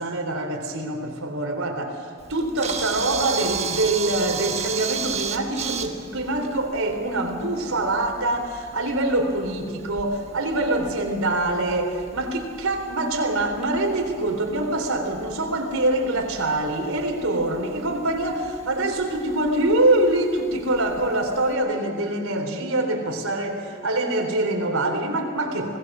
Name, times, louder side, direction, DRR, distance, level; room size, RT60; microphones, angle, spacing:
voice 1, 0.0-25.8, right 2 dB, 75° right, 3 dB, 3.9 m, -24 dB
Camera, 2.2-21.5, right 7 dB, 30° right, 1.5 m, -36 dB
25.0 x 19.5 x 6.3 m, 2.1 s
head